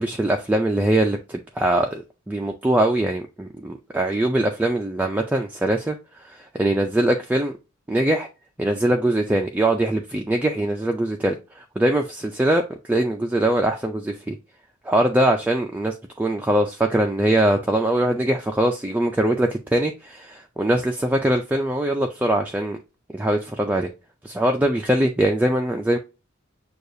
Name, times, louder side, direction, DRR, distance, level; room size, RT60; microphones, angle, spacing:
voice 1, 0.0-6.0 6.2-7.5 7.9-8.3 8.6-14.4 14.9-22.8 23.1-23.9 24.2-26.0, right 1 dB, 10° right, 0.3 m, -22 dB
6.5 x 2.3 x 2.6 m
head